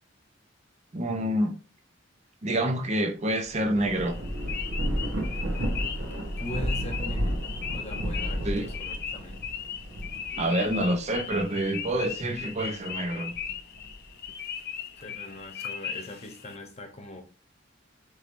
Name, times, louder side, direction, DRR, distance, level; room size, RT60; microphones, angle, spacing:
voice 1, 0.9-1.6 2.4-4.2 8.4-8.6 10.4-13.3, right 1 dB, 35° right, 0.7 m, -27 dB
Thunder / Rain, 3.5-12.4 12.9-14.2, equal, 70° right, 1.1 m, -32 dB
sound 1, 3.8-16.6, left 8 dB, 55° left, 0.5 m, -38 dB
voice 2, 6.4-7.4 7.7-9.4 15.0-17.2, left 1 dB, 35° left, 1.0 m, -41 dB
4.7 x 3.1 x 2.5 m
head